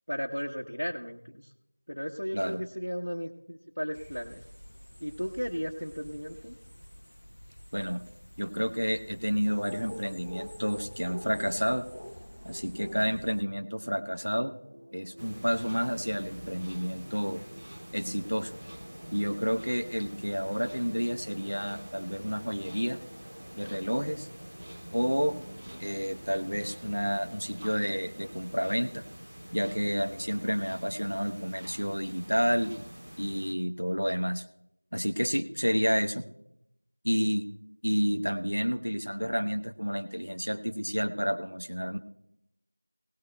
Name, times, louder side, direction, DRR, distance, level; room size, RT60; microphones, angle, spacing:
voice 1, 0.1-1.2 1.9-4.4 5.0-6.5, equal, 70° left, -1 dB, 1.0 m, -35 dB
voice 2, 2.3-2.6 7.7-8.0 8.4-11.9 12.4-14.5 14.9-17.4 17.9-18.6 19.1-23.0 23.5-24.3 24.9-25.4 25.8-29.0 29.5-32.7 33.2-34.4 34.9-36.3 37.0-37.5 37.8-42.0, equal, 80° right, 6 dB, 1.0 m, -30 dB
sound 1, 3.9-13.4, equal, 50° left, 0.6 m, -46 dB
sound 2, 10.5-29.0, equal, 55° right, 5.6 m, -53 dB
sound 3, 15.2-33.5, equal, 15° right, 0.7 m, -46 dB
22.0 x 17.5 x 2.3 m, 0.79 s
figure-of-eight pair, 180°, 0 cm